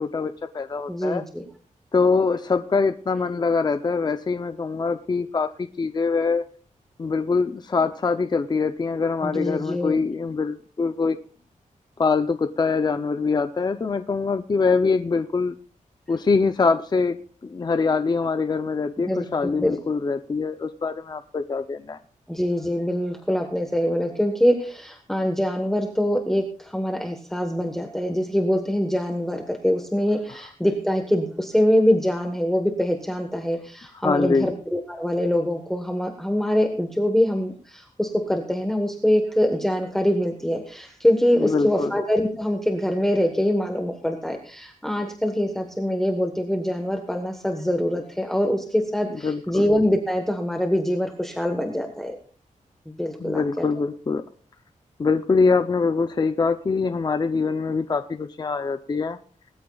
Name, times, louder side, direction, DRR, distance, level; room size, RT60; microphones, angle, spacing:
voice 1, 0.0-1.2 1.9-6.4 7.0-11.2 12.0-15.5 16.1-22.0 34.0-34.5 41.3-41.9 49.2-49.7 53.2-54.2 55.0-59.2, left 4 dB, 30° left, 9 dB, 0.6 m, -23 dB
voice 2, 0.9-1.4 9.2-10.0 19.0-19.2 19.6-19.8 22.3-52.2 52.9-53.6, equal, 5° left, 3 dB, 1.2 m, -24 dB
20.0 x 14.0 x 2.3 m, 0.42 s
wide cardioid pair, 135°, 13 cm